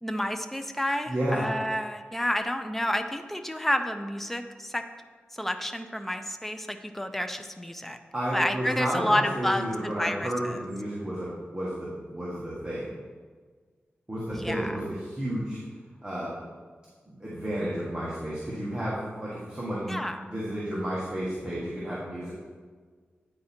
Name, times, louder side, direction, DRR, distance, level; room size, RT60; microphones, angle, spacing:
voice 1, 0.0-4.8 5.4-8.0 8.3-10.5 14.3-14.7 19.9-20.2, left 1 dB, 5° left, 7 dB, 0.4 m, -30 dB
voice 2, 1.1-1.5 8.1-12.9 14.1-15.6 16.0-16.3 17.1-20.0 20.2-22.3, right 1 dB, 20° right, -8 dB, 1.4 m, -32 dB
8.9 x 4.8 x 4.3 m, 1.5 s
wide cardioid pair, 125°, 4 cm